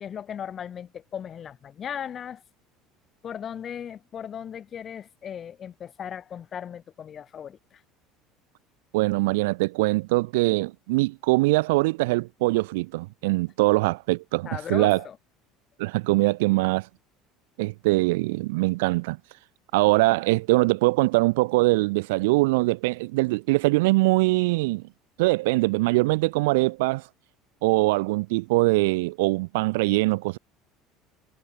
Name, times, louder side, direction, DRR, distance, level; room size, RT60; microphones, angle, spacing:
voice 1, 0.0-2.4 3.2-7.8 14.4-15.2, left 8 dB, 40° left, 6.2 m, -37 dB
voice 2, 8.9-15.0 15.8-16.9 17.6-19.2 19.7-24.8 25.2-27.0 27.6-30.4, right 23 dB, 65° right, 0.9 m, -22 dB
figure-of-eight pair, 65°, 0 cm